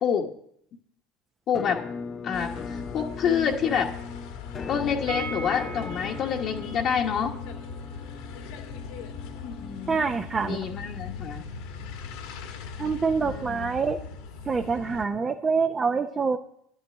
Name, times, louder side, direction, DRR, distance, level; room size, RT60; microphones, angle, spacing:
voice 1, 1.5-1.8 2.2-3.9 4.7-7.3 9.4-10.0 10.4-11.4 13.2-13.7, left 7 dB, 50° left, 0 dB, 1.2 m, -27 dB
Musical instrument, 1.5-11.3, left 5 dB, 30° left, 0.5 m, -39 dB
sound 1, 2.3-15.1, left 5 dB, 70° left, 1.5 m, -40 dB
sound 2, 5.1-10.8 11.1-11.2 11.5-11.6, right 6 dB, 65° right, 1.0 m, -42 dB
voice 2, 9.9-10.6 12.8-14.0 14.5-16.4, right 5 dB, 25° right, 5 dB, 0.7 m, -26 dB
10.5 x 6.5 x 7.8 m, 0.69 s
hypercardioid pair, 95°, 0 cm